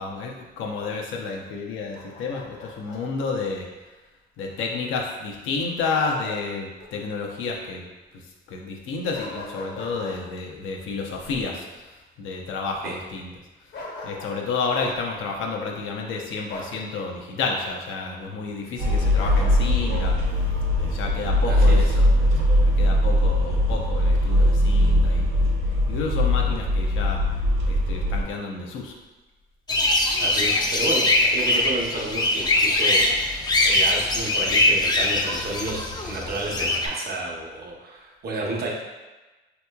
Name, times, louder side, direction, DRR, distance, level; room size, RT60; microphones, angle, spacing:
voice 1, 0.0-3.7 4.4-7.8 8.1-8.2 8.5-11.8 12.2-13.3 14.0-20.2 20.8-22.3 22.6-25.5 25.9-27.2 27.7-28.9, left 4 dB, 85° left, 0 dB, 0.6 m, -30 dB
Bark, 1.9-3.0 5.8-6.4 6.8-6.9 9.1-10.2 13.7-14.4 14.7-15.0 16.5-16.8 19.2-20.1, left 2 dB, 60° left, 0.8 m, -38 dB
sound 1, 18.8-28.2, left 1 dB, 85° right, 0.7 m, -20 dB
voice 2, 21.4-22.0 23.5-23.6 30.2-38.7, right 2 dB, 50° right, -2 dB, 0.8 m, -31 dB
sound 2, 29.7-36.9, left 2 dB, 20° left, 0.4 m, -22 dB
3.6 x 2.9 x 2.2 m, 1.2 s
cardioid pair, 90°, 20 cm